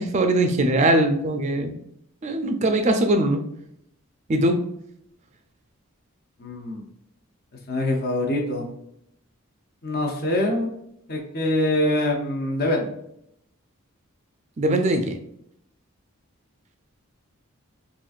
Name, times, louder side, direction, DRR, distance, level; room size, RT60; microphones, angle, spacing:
voice 1, 0.0-1.7 2.2-3.4 4.3-4.6 14.6-15.1, right 1 dB, 30° right, 6 dB, 0.3 m, -21 dB
voice 2, 6.4-6.8 7.7-8.7 9.8-10.7 11.1-12.9, left 1 dB, 45° left, 1 dB, 0.6 m, -24 dB
3.8 x 2.5 x 2.4 m, 0.76 s
head